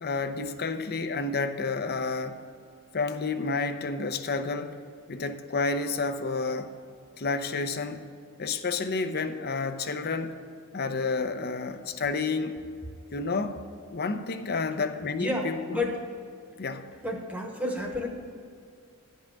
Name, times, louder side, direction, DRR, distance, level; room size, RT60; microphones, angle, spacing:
voice 1, 0.0-2.4 2.9-4.8 5.1-6.7 7.2-8.0 8.4-10.3 10.7-12.5 13.1-13.6 13.9-15.8 16.6-16.9, left 4 dB, 45° left, 9 dB, 0.6 m, -30 dB
voice 2, 15.2-16.0 17.0-18.1, left 1 dB, 5° right, 1 dB, 1.0 m, -30 dB
10.5 x 5.5 x 7.6 m, 2.3 s
head